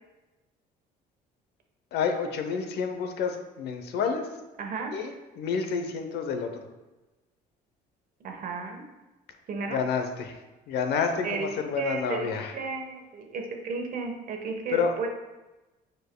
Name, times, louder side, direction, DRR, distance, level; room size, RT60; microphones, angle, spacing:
voice 1, 1.9-4.2 4.9-6.5 9.7-10.3 10.7-12.5 14.7-14.9, left 6 dB, 75° left, 6 dB, 0.8 m, -29 dB
voice 2, 4.6-4.9 8.2-8.8 9.5-9.8 11.2-15.1, right 4 dB, 55° right, 3 dB, 1.1 m, -33 dB
9.6 x 4.5 x 2.2 m, 1.1 s
cardioid pair, 110°, 17 cm